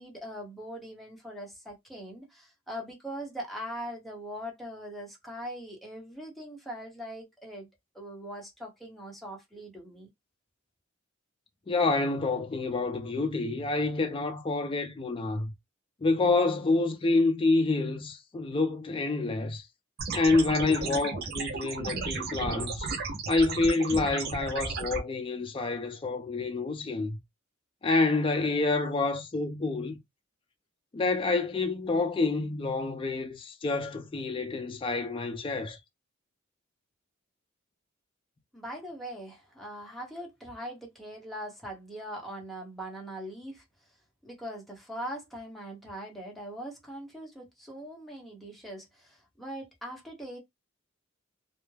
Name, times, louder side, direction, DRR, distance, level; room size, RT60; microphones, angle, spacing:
voice 1, 0.0-7.7 7.9-10.1 38.5-43.6 44.2-50.4, equal, ahead, 0.8 m, -41 dB
voice 2, 11.7-15.5 16.0-19.6 20.1-22.9 23.3-27.2 27.8-30.0 30.9-35.8, left 3 dB, 25° left, 0.4 m, -28 dB
sound 1, 20.0-25.0, right 4 dB, 50° right, 0.5 m, -34 dB
2.2 x 2.0 x 3.1 m
head